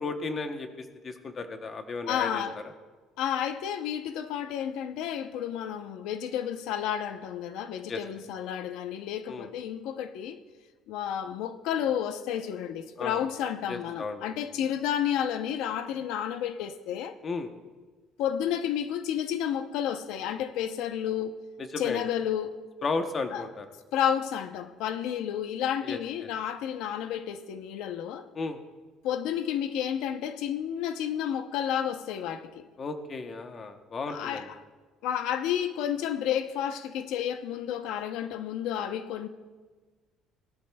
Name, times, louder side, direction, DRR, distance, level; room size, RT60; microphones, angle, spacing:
voice 1, 0.0-2.4 7.9-8.0 9.3-9.5 13.0-13.3 13.7-14.3 17.2-17.5 21.6-22.0 22.8-23.7 25.8-26.0 28.3-28.6 32.8-34.5, left 3 dB, 30° left, 0.8 m, -34 dB
voice 2, 2.1-2.6 3.2-10.4 10.9-17.2 18.2-21.4 21.8-22.6 23.3-23.5 23.9-28.3 29.0-32.6 34.1-34.6 35.0-39.3, left 9 dB, 75° left, 0.7 m, -31 dB
18.5 x 13.0 x 2.3 m
cardioid pair, 160°, 0 cm